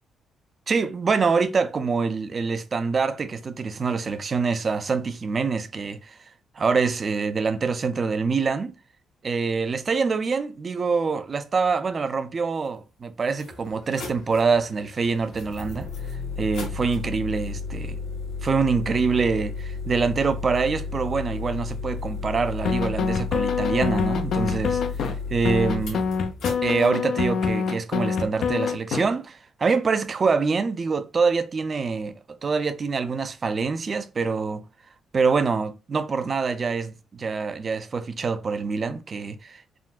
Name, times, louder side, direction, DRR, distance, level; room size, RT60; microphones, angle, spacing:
voice 1, 0.7-6.2 6.6-8.7 9.2-15.9 16.4-18.0 18.4-26.1 26.6-34.6 35.1-39.6, right 5 dB, 40° right, 0.4 m, -25 dB
sound 1, 12.7-12.8 13.3-26.9, left 4 dB, 85° left, 1.5 m, -33 dB
sound 2, 22.6-25.1 25.4-29.0, left 5 dB, 65° left, 0.5 m, -25 dB
3.7 x 2.2 x 2.4 m
cardioid pair, 90°, 0 cm